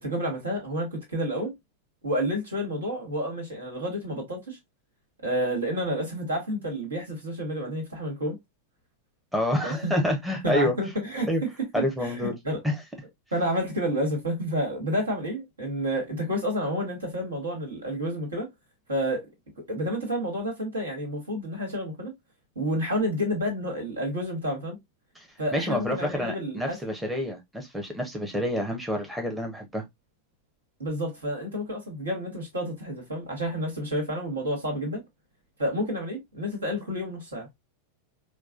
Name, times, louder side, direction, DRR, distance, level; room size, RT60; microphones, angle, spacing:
voice 1, 0.0-1.5 2.0-4.6 5.2-8.4 9.6-9.9 10.4-11.5 11.7-12.6 13.3-18.5 18.9-19.3 19.6-22.1 22.5-24.8 25.4-26.8 30.8-35.0 35.6-37.5, equal, 75° right, 1.7 m, -30 dB
voice 2, 9.3-10.7 11.3-11.4 11.7-12.3 12.6-12.8 25.5-29.8, left 1 dB, 5° right, 0.9 m, -28 dB
4.6 x 2.3 x 2.4 m
figure-of-eight pair, 90°, 0 cm